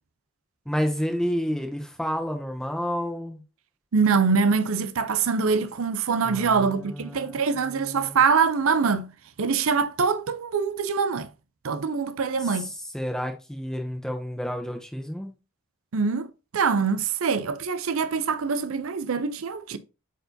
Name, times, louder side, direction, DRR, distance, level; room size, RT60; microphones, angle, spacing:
voice 1, 0.7-3.4 6.2-8.2 12.6-12.7 12.9-15.3, equal, 5° left, 0.8 m, -30 dB
voice 2, 3.9-9.1 9.4-11.3 11.6-12.7 15.9-19.8, right 5 dB, 80° right, 0.5 m, -24 dB
8.1 x 4.5 x 2.7 m
head